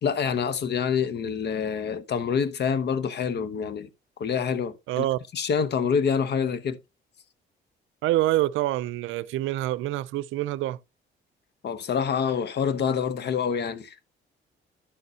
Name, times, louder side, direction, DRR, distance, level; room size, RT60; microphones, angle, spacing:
voice 1, 0.0-3.9 4.2-5.1 5.3-6.8 11.6-13.9, left 6 dB, 60° left, 0.9 m, -26 dB
voice 2, 4.9-5.2 8.0-10.8, right 15 dB, 90° right, 0.5 m, -26 dB
11.0 x 6.7 x 2.8 m
cardioid pair, 90°, 20 cm